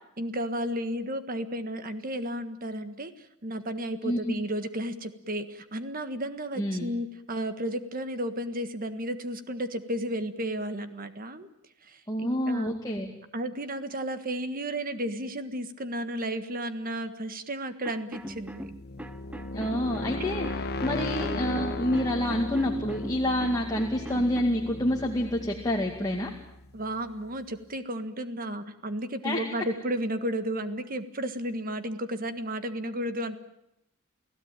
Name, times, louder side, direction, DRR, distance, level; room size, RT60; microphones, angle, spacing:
voice 1, 0.2-11.5 11.8-12.7 13.3-18.7 26.7-33.4, right 1 dB, 40° right, 10 dB, 1.6 m, -33 dB
voice 2, 4.0-4.4 6.6-6.9 12.1-13.1 19.5-26.3 29.2-29.4, left 1 dB, 15° left, 0 dB, 2.2 m, -28 dB
sound 1, 17.8-24.4, equal, 5° right, 0.9 m, -41 dB
sound 2, 18.3-27.1, left 2 dB, 50° left, 1.2 m, -36 dB
29.5 x 17.0 x 9.0 m, 0.84 s
head